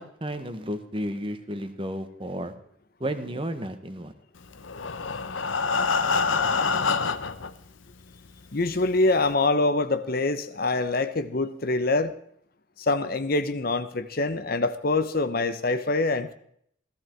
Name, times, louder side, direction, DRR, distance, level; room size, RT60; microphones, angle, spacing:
voice 1, 0.0-2.5 3.0-4.1, equal, 25° right, 1.3 m, -32 dB
Breathing, 4.6-7.5 8.3-8.4 8.7-8.8 9.3-9.4, left 4 dB, 80° left, 1.0 m, -26 dB
voice 2, 8.5-12.1 12.8-16.3, left 2 dB, 50° left, 0.9 m, -25 dB
16.0 x 14.0 x 4.6 m
head